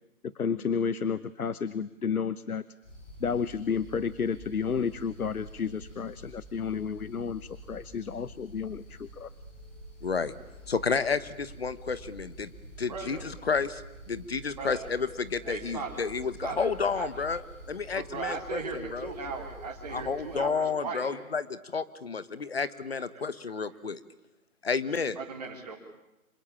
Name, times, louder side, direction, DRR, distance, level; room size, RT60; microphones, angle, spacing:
voice 1, 0.4-2.6 3.2-9.3, left 6 dB, 85° left, 16 dB, 1.1 m, -31 dB
sound 1, 2.8-20.4, right 1 dB, 20° left, 7.8 m, -48 dB
voice 2, 10.0-10.3 10.7-12.5 12.8-17.4 17.7-19.1 19.9-24.0 24.6-25.2, left 5 dB, 45° left, 15 dB, 1.4 m, -31 dB
voice 3, 12.9-13.3 14.6-14.9 15.4-16.0 16.4-17.1 17.9-21.1 23.1-23.2 25.2-25.8, right 4 dB, 30° right, -1 dB, 3.9 m, -38 dB
27.0 x 25.0 x 8.6 m, 0.94 s
hypercardioid pair, 175°, 43 cm